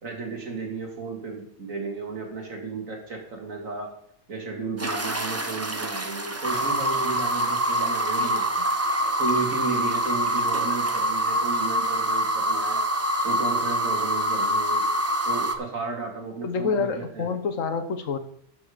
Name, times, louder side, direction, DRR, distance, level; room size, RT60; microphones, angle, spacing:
voice 1, 0.0-3.9 4.3-8.5 9.0-12.8 13.2-14.8 15.3-17.3, right 4 dB, 90° right, 1 dB, 2.6 m, -33 dB
sound 1, 4.8-15.6, right 1 dB, 15° right, 0.6 m, -25 dB
voice 2, 16.4-18.2, left 5 dB, 80° left, 9 dB, 1.4 m, -27 dB
12.0 x 6.1 x 5.0 m, 0.69 s
omnidirectional pair, 1.3 m